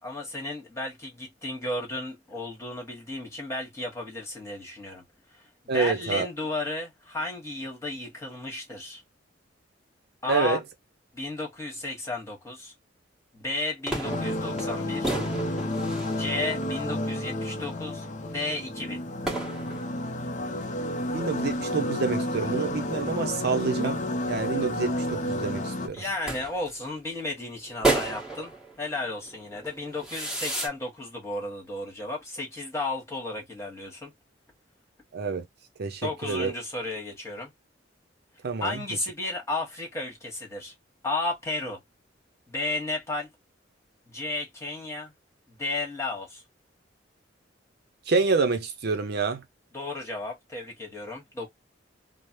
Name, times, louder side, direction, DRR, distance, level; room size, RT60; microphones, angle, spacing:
voice 1, 0.0-5.0 5.7-9.0 10.2-10.6 11.1-12.7 13.3-15.1 16.1-19.0 25.9-28.5 28.8-34.1 36.0-37.5 38.6-40.7 41.0-41.8 42.5-43.3 44.1-45.1 45.5-46.4 49.7-51.5, left 2 dB, 15° left, 1.5 m, -33 dB
voice 2, 5.7-6.3 10.3-10.6 21.1-26.0 35.1-35.5 35.8-36.5 38.4-38.8 48.1-49.4, right 4 dB, 60° right, 0.6 m, -27 dB
sound 1, 13.8-30.7, right 2 dB, ahead, 1.4 m, -35 dB
sound 2, 14.0-25.9, left 1 dB, 40° left, 0.5 m, -31 dB
3.2 x 2.0 x 2.9 m
head